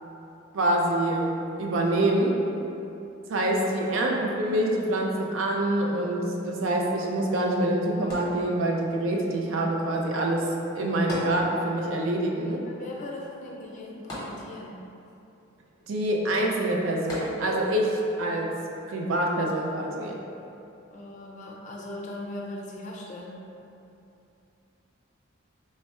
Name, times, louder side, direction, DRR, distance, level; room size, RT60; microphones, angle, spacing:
voice 1, 0.5-2.4 3.3-10.5 10.7-12.6 15.9-18.5 18.9-20.2, right 1 dB, 70° right, -1 dB, 0.5 m, -26 dB
sound 1, 8.1-9.0 11.1-11.9 12.2-12.3 14.1-14.9 17.1-17.8 18.5-18.6, left 1 dB, 20° left, 0.9 m, -37 dB
voice 2, 12.6-14.8 20.9-23.4, left 1 dB, 35° left, -2 dB, 0.4 m, -39 dB
3.2 x 2.3 x 4.1 m, 2.7 s
head